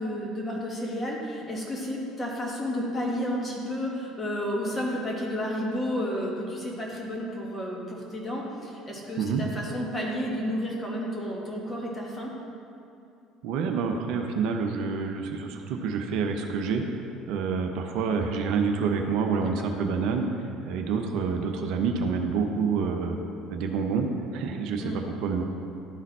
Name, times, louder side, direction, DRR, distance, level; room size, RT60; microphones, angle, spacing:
voice 1, 0.0-12.3 19.6-19.7 24.8-25.0, equal, 25° left, -3 dB, 1.9 m, -31 dB
voice 2, 13.4-16.8 17.3-20.3 20.6-23.2 23.5-25.4, right 5 dB, 65° right, 4 dB, 0.6 m, -27 dB
12.0 x 4.0 x 4.2 m, 2.6 s
hypercardioid pair, 60°, 0 cm